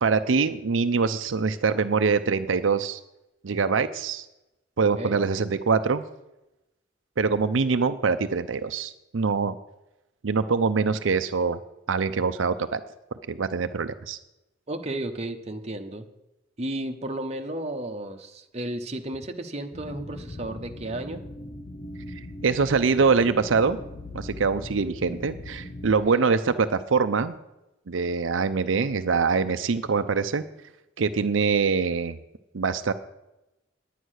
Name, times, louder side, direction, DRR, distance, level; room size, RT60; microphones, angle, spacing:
voice 1, 0.0-3.0 3.4-4.3 4.8-6.0 7.2-9.6 10.2-11.6 11.9-12.8 13.3-14.2 22.2-23.8 24.1-27.3 27.9-30.4 31.0-32.2 32.5-32.9, right 5 dB, 85° right, 10 dB, 0.6 m, -24 dB
voice 2, 14.7-16.0 16.6-21.2 26.1-26.3, right 1 dB, 35° right, 4 dB, 1.0 m, -33 dB
sound 1, 19.7-25.9, left 1 dB, 45° left, 0.8 m, -40 dB
10.0 x 9.5 x 6.4 m, 0.94 s
head